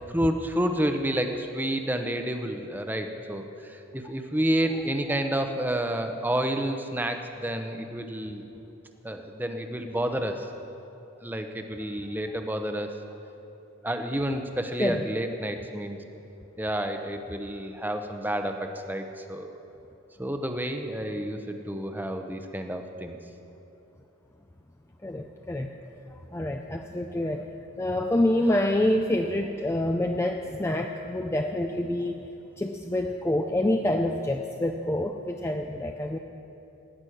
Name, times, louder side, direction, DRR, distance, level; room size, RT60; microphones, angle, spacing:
voice 1, 0.1-8.5 9.0-10.5 11.2-12.9 13.8-16.0 16.6-19.5 20.2-23.2, right 1 dB, 10° right, 5 dB, 0.7 m, -30 dB
voice 2, 25.0-25.7 26.3-27.5 27.8-32.3 32.6-36.2, left 1 dB, 10° left, 4 dB, 0.4 m, -27 dB
17.5 x 6.2 x 9.9 m, 2.9 s
head